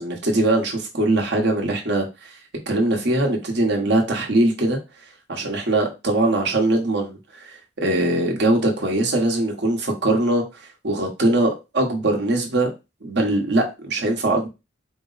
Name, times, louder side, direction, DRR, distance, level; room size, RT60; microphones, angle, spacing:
voice 1, 0.0-2.3 2.7-4.8 5.3-12.7 13.0-14.5, right 2 dB, 65° right, 1 dB, 1.1 m, -21 dB
4.5 x 2.0 x 4.0 m, 0.26 s
head